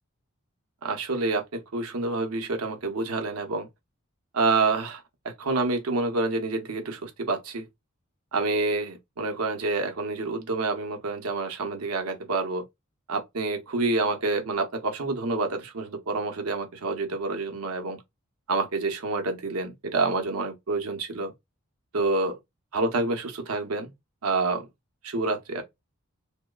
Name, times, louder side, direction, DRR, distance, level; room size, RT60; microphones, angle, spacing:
voice 1, 0.8-3.7 4.3-7.7 8.3-12.6 13.1-18.0 18.5-21.3 21.9-22.4 22.7-23.9 24.2-24.7 25.0-25.6, right 3 dB, 90° right, 0.7 m, -28 dB
2.9 x 2.1 x 2.2 m
head